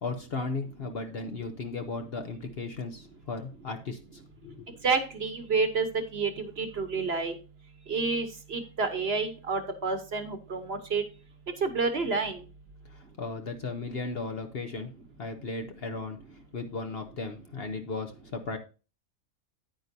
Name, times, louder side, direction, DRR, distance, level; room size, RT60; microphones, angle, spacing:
voice 1, 0.0-4.7 12.9-14.9 15.2-16.2 16.5-18.6, left 3 dB, 50° left, 6 dB, 0.9 m, -36 dB
voice 2, 4.8-7.3 7.9-11.0 11.6-12.4, right 4 dB, 50° right, 8 dB, 1.2 m, -29 dB
9.6 x 8.9 x 2.7 m, 0.33 s
omnidirectional pair, 1.5 m